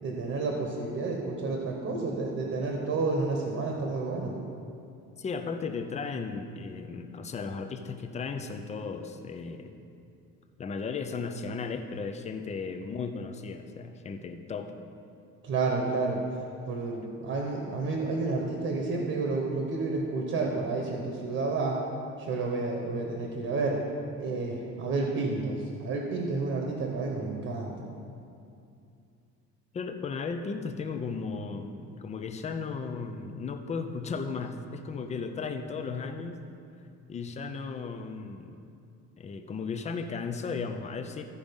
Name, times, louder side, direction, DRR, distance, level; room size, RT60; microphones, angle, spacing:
voice 1, 0.0-4.4 15.4-16.2 16.7-21.8 22.2-23.8 24.2-27.8, right 3 dB, 45° right, 0 dB, 1.2 m, -30 dB
voice 2, 5.2-9.7 10.6-14.7 29.7-36.4 37.1-38.6 39.2-41.2, left 5 dB, 20° left, 6 dB, 0.5 m, -35 dB
14.5 x 5.1 x 5.3 m, 2.5 s
cardioid pair, 180°, 31 cm